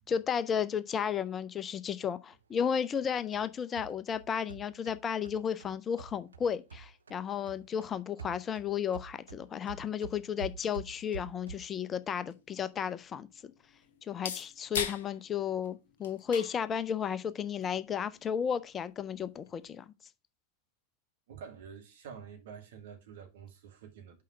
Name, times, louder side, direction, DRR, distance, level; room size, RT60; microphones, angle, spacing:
voice 1, 0.1-13.3 14.1-19.8, left 8 dB, 25° left, 0.4 m, -33 dB
sound 1, 2.9-7.2 7.5-11.8, right 5 dB, 70° right, 0.5 m, -47 dB
sound 2, 12.3-19.7, left 7 dB, 60° left, 1.1 m, -44 dB
voice 2, 21.3-24.2, right 7 dB, 55° right, 1.8 m, -48 dB
5.6 x 4.8 x 5.2 m
figure-of-eight pair, 90°, 0 cm